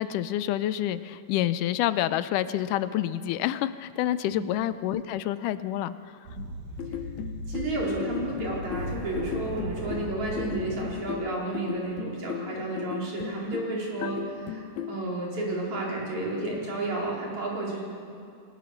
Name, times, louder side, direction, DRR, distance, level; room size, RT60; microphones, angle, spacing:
voice 1, 0.0-6.0 6.3-6.5 14.0-14.1, left 12 dB, 85° left, 13 dB, 2.2 m, -28 dB
sound 1, 6.3-11.2, right 1 dB, 90° right, 3.6 m, -38 dB
sound 2, 6.8-15.0, left 10 dB, 70° left, 2.1 m, -36 dB
voice 2, 7.5-17.8, right 2 dB, 65° right, -4 dB, 5.7 m, -31 dB
28.0 x 19.0 x 6.6 m, 2.4 s
omnidirectional pair, 3.6 m